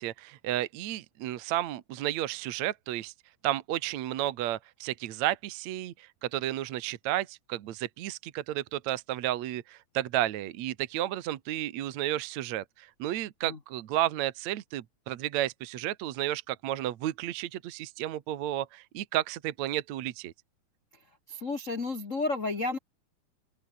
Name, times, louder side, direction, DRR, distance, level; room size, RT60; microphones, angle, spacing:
voice 1, 0.0-3.1 3.4-20.3, right 13 dB, 65° right, 2.1 m, -32 dB
voice 2, 21.3-22.8, left 3 dB, 80° left, 0.7 m, -31 dB
omnidirectional pair, 4.4 m